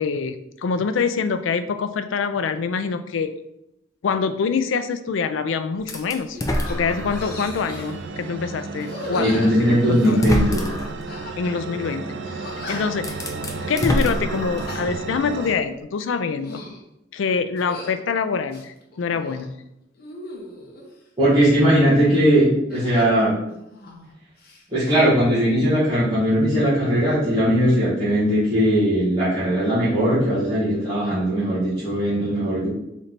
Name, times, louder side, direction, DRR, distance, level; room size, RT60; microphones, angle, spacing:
voice 1, 0.0-3.3 4.0-6.4 6.7-10.3 11.4-13.2 13.7-16.6 17.1-19.6, left 5 dB, 85° left, 10 dB, 0.4 m, -25 dB
sound 1, 5.9-6.0 6.3-6.8 7.1-8.0 8.8-10.3 11.1-11.6 11.9-12.0 12.4-13.1 13.5-13.8 14.4-14.9 15.3-15.6 16.2-16.8 17.6-18.0 18.5-19.5 20.0-20.9 22.7-24.1 24.4-25.1, left 2 dB, 50° left, 0.8 m, -38 dB
sound 2, 5.9-7.5 8.1-8.2 9.4-9.5 10.0-11.0 12.5-12.6 12.9-14.9, left 1 dB, 20° left, 0.4 m, -26 dB
sound 3, 6.6-15.5, right 4 dB, 65° right, 0.4 m, -33 dB
voice 2, 9.2-10.6 21.2-23.3 24.7-32.7, equal, 20° right, -14 dB, 1.6 m, -19 dB
4.1 x 3.2 x 4.0 m, 0.84 s
head